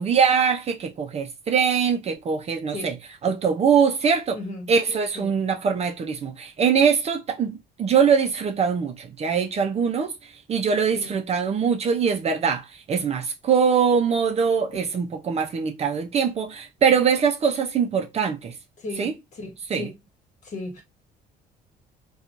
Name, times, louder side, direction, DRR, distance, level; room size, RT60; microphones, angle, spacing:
voice 1, 0.0-3.0 3.2-4.4 4.7-10.1 10.5-18.5 19.0-19.1 19.7-19.9, right 6 dB, 40° right, 0.5 m, -22 dB
voice 2, 4.3-4.7 5.1-5.4 10.9-11.2 18.8-19.9 20.4-20.8, left 2 dB, 45° left, 1.3 m, -36 dB
2.9 x 2.3 x 2.5 m
cardioid pair, 110°, 17 cm